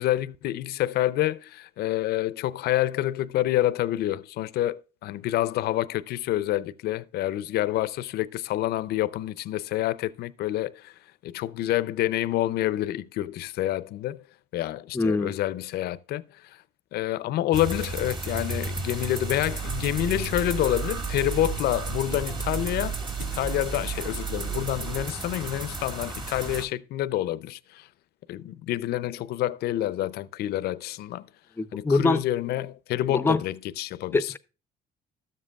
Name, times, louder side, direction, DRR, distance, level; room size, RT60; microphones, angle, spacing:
voice 1, 0.0-10.9 11.2-14.2 14.5-16.6 16.9-27.9 28.3-31.2 31.7-34.3, left 14 dB, 70° left, 0.5 m, -28 dB
voice 2, 14.9-15.3 31.6-32.2 33.1-33.4 34.1-34.4, left 3 dB, 15° left, 0.5 m, -23 dB
sound 1, 17.5-26.6, right 2 dB, 25° right, 1.7 m, -34 dB
sound 2, 19.4-25.1, right 8 dB, 50° right, 1.5 m, -34 dB
13.0 x 7.5 x 2.3 m
cardioid pair, 110°, 17 cm